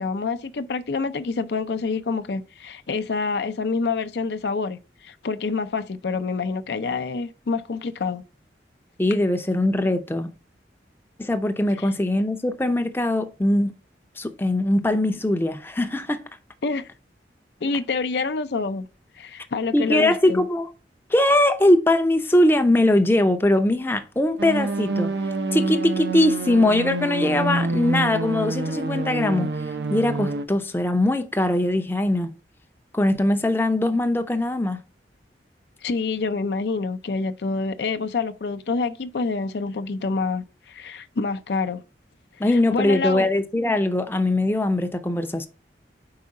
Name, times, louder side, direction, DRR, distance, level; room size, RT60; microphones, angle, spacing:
voice 1, 0.0-8.2 11.8-11.9 16.6-16.9 17.6-18.9 19.2-20.5 35.8-41.8 42.4-43.3, left 4 dB, 65° left, 0.5 m, -27 dB
voice 2, 9.0-10.3 11.2-13.7 14.2-16.2 19.7-20.7 21.1-25.1 25.5-29.5 29.9-32.3 32.9-34.8 42.4-45.5, left 1 dB, 15° left, 0.5 m, -21 dB
sound 1, 24.4-30.5, right 2 dB, 75° right, 0.6 m, -27 dB
4.8 x 4.6 x 5.2 m
head